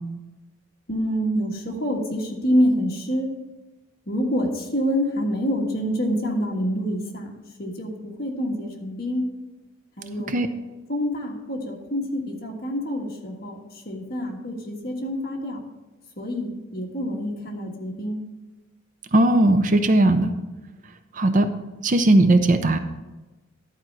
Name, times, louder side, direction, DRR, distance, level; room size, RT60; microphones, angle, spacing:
voice 1, 0.9-3.3 4.1-7.3 7.6-9.2 10.0-10.4 10.9-15.6 16.2-18.2, equal, 45° left, 0 dB, 1.6 m, -26 dB
voice 2, 19.1-20.3 21.1-21.5 21.8-22.8, right 1 dB, 40° right, 9 dB, 0.5 m, -18 dB
11.5 x 4.4 x 6.0 m, 1.1 s
head